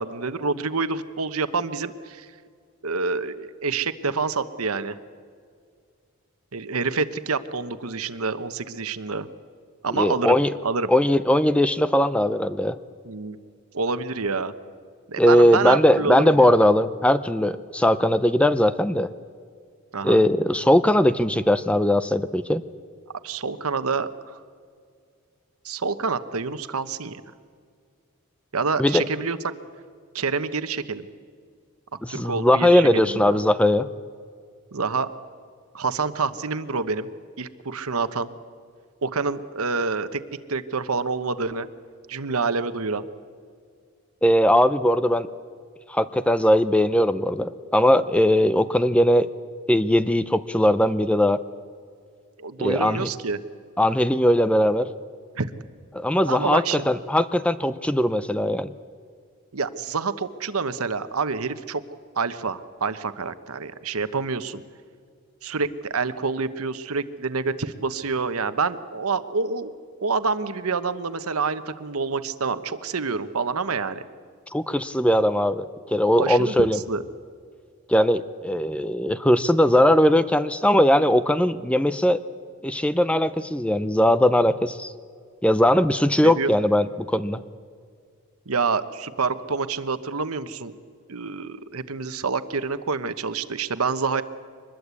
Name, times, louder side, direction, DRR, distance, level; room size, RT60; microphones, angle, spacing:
voice 1, 0.0-2.3 2.8-5.0 6.5-9.3 9.8-10.4 10.6-10.9 13.0-13.4 13.7-14.5 15.1-16.6 19.9-20.2 23.2-24.4 25.6-27.2 28.5-29.4 30.1-31.1 32.1-33.3 34.7-35.1 35.7-37.1 37.4-38.3 39.0-40.2 40.5-41.7 42.1-43.0 52.4-53.4 55.3-55.5 56.3-56.9 59.5-61.8 62.1-64.6 65.4-69.7 70.0-74.0 76.2-77.0 86.2-86.5 88.5-90.7 91.1-94.2, right 4 dB, 80° right, 12 dB, 1.1 m, -27 dB
voice 2, 9.9-10.5 10.9-12.7 15.2-19.1 20.0-22.6 28.8-29.0 32.0-33.9 44.2-45.3 45.9-49.3 49.7-51.4 52.6-53.1 53.8-54.9 55.9-58.7 74.5-76.8 77.9-82.2 82.6-84.9 85.4-87.4, left 1 dB, 5° left, 13 dB, 0.5 m, -20 dB
24.0 x 21.0 x 8.4 m, 2.1 s
head